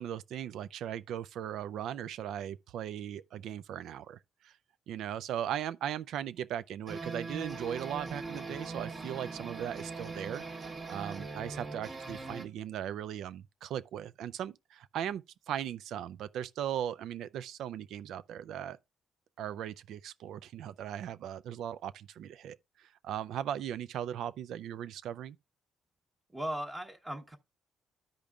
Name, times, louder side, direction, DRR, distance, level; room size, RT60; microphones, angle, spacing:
voice 1, 0.0-4.2 4.4-4.5 4.9-10.4 10.9-18.8 19.4-22.6 23.0-25.4, right 10 dB, 80° right, 0.3 m, -38 dB
sound 1, 6.9-12.5, right 3 dB, 40° right, 1.2 m, -41 dB
voice 2, 26.3-27.4, right 1 dB, 20° right, 1.0 m, -37 dB
13.5 x 5.1 x 2.4 m
cardioid pair, 90°, 0 cm